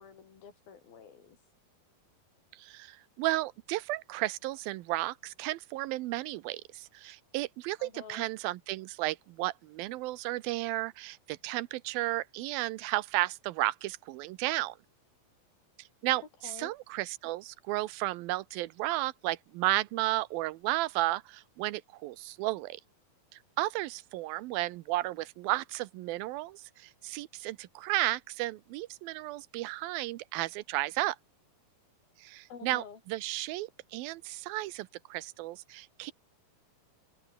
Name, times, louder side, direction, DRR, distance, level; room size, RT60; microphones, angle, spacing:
voice 1, 0.0-1.4 7.8-8.3 16.4-16.7 32.5-33.0, left 6 dB, 80° left, 5.7 m, -49 dB
voice 2, 2.5-14.8 15.8-22.8 23.3-31.2 32.2-36.1, right 18 dB, 90° right, 2.6 m, -33 dB
open air
omnidirectional pair, 4.2 m